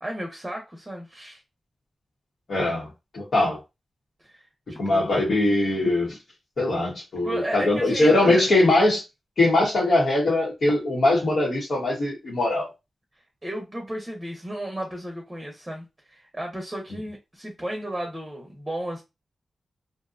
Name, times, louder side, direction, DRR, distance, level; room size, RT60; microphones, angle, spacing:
voice 1, 0.0-1.4 4.2-4.4 4.7-5.1 7.2-8.4 13.4-19.0, right 1 dB, 15° right, 0.8 m, -34 dB
voice 2, 2.5-3.6 4.8-6.2 6.6-9.0 9.4-12.7, left 2 dB, 60° left, 1.0 m, -21 dB
2.6 x 2.2 x 2.5 m
wide cardioid pair, 115°, 0 cm